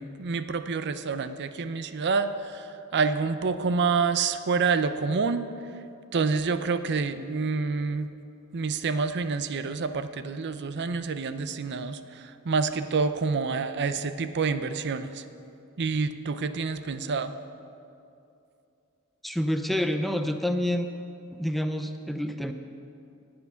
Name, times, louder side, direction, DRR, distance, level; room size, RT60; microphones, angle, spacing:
voice 1, 0.0-5.5 6.1-8.1 8.5-15.2 15.8-17.3, right 4 dB, 50° right, 11 dB, 0.5 m, -28 dB
voice 2, 19.2-20.9 21.3-22.5, left 1 dB, ahead, 7 dB, 0.4 m, -28 dB
17.5 x 7.7 x 5.7 m, 2.6 s
head